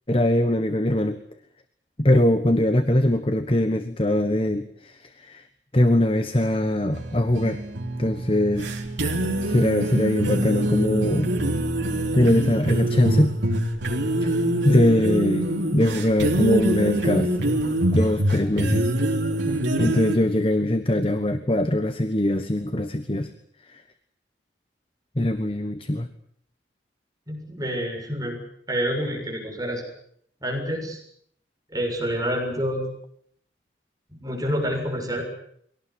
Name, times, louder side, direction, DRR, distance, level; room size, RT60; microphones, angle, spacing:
voice 1, 0.1-1.2 2.0-5.4 5.7-7.6 8.0-8.7 9.5-11.3 12.1-13.3 14.2-14.3 14.6-15.5 15.7-17.3 17.9-18.9 19.8-23.3 23.7-23.8 25.2-26.1, left 1 dB, 30° left, 9 dB, 1.3 m, -21 dB
sound 1, 6.9-20.2, right 1 dB, 80° right, 4.3 m, -25 dB
voice 2, 27.3-28.4 28.7-29.8 30.4-31.0 31.7-32.8 34.1-35.2, equal, 20° right, 0 dB, 7.0 m, -28 dB
23.5 x 18.0 x 9.8 m, 0.67 s
head